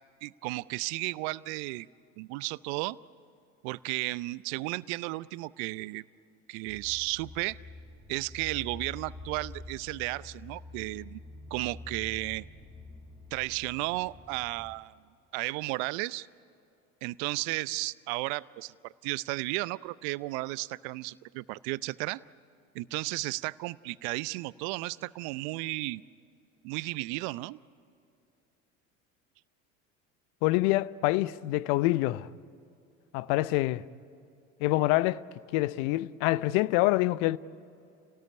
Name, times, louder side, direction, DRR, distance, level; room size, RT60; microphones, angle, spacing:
voice 1, 0.2-1.9 2.2-3.0 3.6-6.0 6.5-7.6 8.1-11.2 11.5-12.4 13.3-14.9 15.3-16.3 17.0-22.2 22.7-26.0 26.6-27.6, right 22 dB, 60° right, 0.7 m, -34 dB
sound 1, 6.7-14.8, left 2 dB, 10° left, 4.4 m, -47 dB
voice 2, 30.4-32.3 33.1-33.8 34.6-35.2 35.5-37.4, left 18 dB, 60° left, 0.8 m, -26 dB
29.5 x 18.5 x 9.6 m
hypercardioid pair, 70°, 40 cm